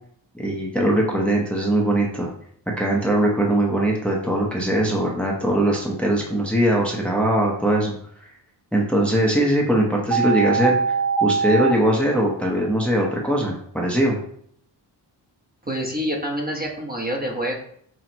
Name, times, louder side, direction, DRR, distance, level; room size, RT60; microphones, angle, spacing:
voice 1, 0.3-2.3 2.8-7.9 8.7-14.2, right 1 dB, 5° left, -2 dB, 1.0 m, -21 dB
sound 1, 10.1-11.7, right 6 dB, 40° right, 0.9 m, -21 dB
voice 2, 15.6-17.5, equal, 20° right, -1 dB, 1.1 m, -27 dB
6.1 x 2.4 x 2.9 m, 0.65 s
cardioid pair, 55°, 45 cm